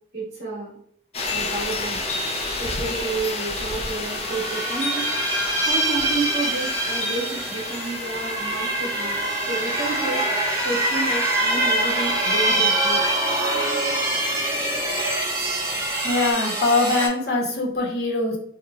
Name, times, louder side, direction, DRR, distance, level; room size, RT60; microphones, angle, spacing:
voice 1, 0.1-0.8 1.3-2.0 2.5-5.1 5.6-10.3 10.6-13.1, right 3 dB, 60° right, -8 dB, 1.3 m, -30 dB
sound 1, 1.1-16.3, left 2 dB, 35° left, 0.4 m, -32 dB
sound 2, 3.3-3.4 3.7-17.1, right 1 dB, 15° right, 0.7 m, -24 dB
voice 2, 16.0-18.4, left 3 dB, 60° left, -2 dB, 0.9 m, -22 dB
4.6 x 2.2 x 2.4 m, 0.65 s
head